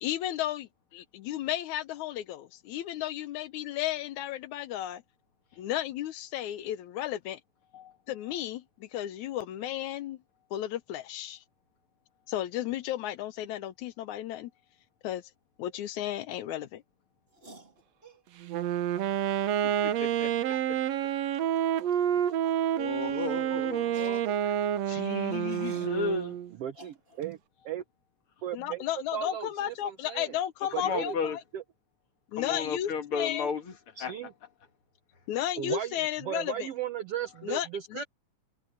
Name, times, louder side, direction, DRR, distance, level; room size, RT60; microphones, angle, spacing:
voice 1, 0.0-5.0 5.6-7.4 8.1-10.2 10.5-11.4 12.3-14.5 15.0-15.2 15.6-16.8 28.5-31.4 32.3-33.5 35.3-36.7 37.4-38.0, left 12 dB, 70° left, 2.0 m, -33 dB
sound 1, 17.3-18.2 19.6-19.7 19.9-20.0 20.5-20.7 21.3-21.6 21.8-22.0 22.4-22.6 23.0-23.5 23.8-26.0 26.7-27.3, right 2 dB, 15° right, 3.2 m, -51 dB
Wind instrument woodwind instrument, 18.4-26.5, right 10 dB, 65° right, 1.9 m, -29 dB
voice 2, 19.6-20.8 22.1-22.2 22.7-24.6 24.9-26.3 30.8-31.4 32.4-33.7 34.0-34.1, left 5 dB, 45° left, 2.2 m, -34 dB
voice 3, 26.6-27.4 27.6-27.8 28.4-28.8 29.1-30.4 30.7-31.2 31.5-31.6 34.0-34.3 35.6-38.0, right 10 dB, 80° right, 1.3 m, -36 dB
omnidirectional pair, 3.9 m